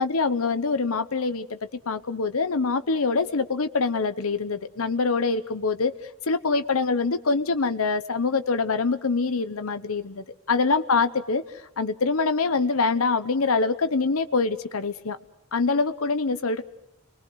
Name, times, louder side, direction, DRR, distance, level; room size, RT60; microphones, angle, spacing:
voice 1, 0.0-1.6 1.9-5.9 6.3-11.4 11.8-15.2 15.5-16.6, left 4 dB, 85° left, 10 dB, 0.9 m, -24 dB
27.5 x 21.0 x 6.3 m, 0.85 s
head